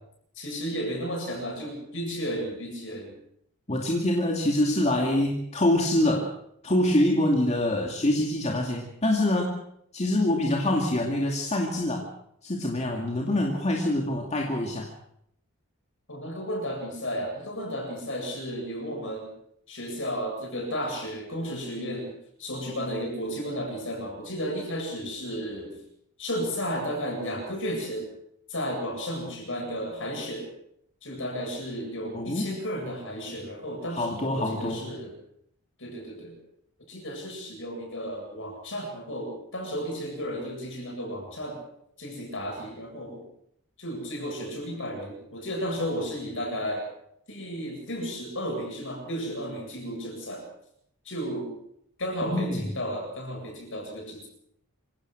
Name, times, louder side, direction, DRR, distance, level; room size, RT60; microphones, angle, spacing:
voice 1, 0.4-3.2 16.1-19.3 19.7-22.1 22.4-25.8 26.2-28.1 28.5-30.5 31.0-35.1 35.8-36.4 36.9-41.6 42.0-43.3 43.8-46.9 47.3-50.5 51.0-51.5 52.0-54.3, equal, 60° left, 1 dB, 7.9 m, -33 dB
voice 2, 3.7-6.3 6.6-9.6 9.9-12.1 12.4-14.9 32.1-32.5 33.9-34.9 52.2-52.7, left 1 dB, 30° left, 0 dB, 2.4 m, -25 dB
26.5 x 16.5 x 6.2 m, 0.72 s
head